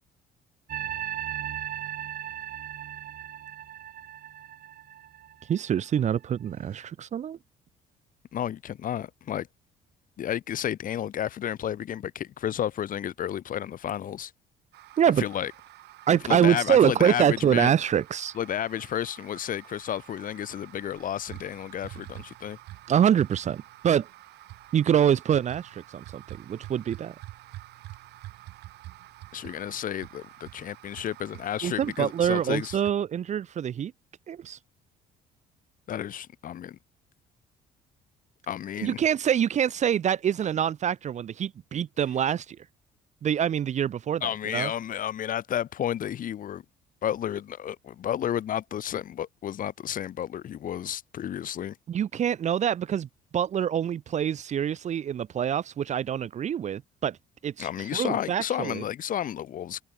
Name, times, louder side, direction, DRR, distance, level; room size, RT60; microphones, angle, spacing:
sound 1, 0.7-6.0 6.5-6.8, right 11 dB, 60° right, 6.1 m, -37 dB
voice 1, 5.5-7.4 15.0-15.2 16.1-18.3 22.9-24.1 24.7-27.1 31.6-33.9 34.3-34.6 38.8-42.6 43.2-44.7 51.9-53.1 53.3-57.2 57.4-58.8, right 9 dB, 45° right, 0.9 m, -25 dB
voice 2, 8.3-9.5 10.2-14.3 15.2-15.5 16.3-17.7 18.3-22.6 29.3-32.8 35.9-36.8 38.5-39.0 44.2-46.6 47.0-51.8 57.6-59.8, left 10 dB, 55° left, 2.6 m, -32 dB
sound 2, 14.7-32.9, right 17 dB, 80° right, 4.1 m, -47 dB
cardioid pair, 110°, 17 cm